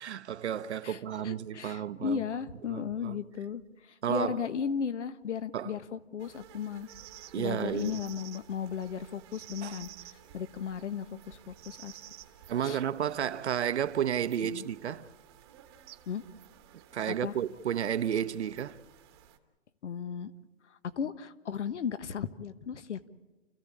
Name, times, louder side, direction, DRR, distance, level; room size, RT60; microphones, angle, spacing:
voice 1, 0.0-2.2 2.7-3.2 4.0-4.4 5.5-5.7 7.3-8.0 9.6-9.8 12.5-15.1 16.9-18.8, right 9 dB, 60° right, 0.9 m, -32 dB
voice 2, 0.8-6.9 7.4-12.0 12.6-12.8 14.4-14.7 16.1-16.2 17.1-17.3 19.8-20.3 21.0-23.1, left 7 dB, 70° left, 1.5 m, -36 dB
sound 1, 6.2-19.4, right 12 dB, 20° right, 1.3 m, -53 dB
29.5 x 15.0 x 8.6 m
hypercardioid pair, 170°, 37 cm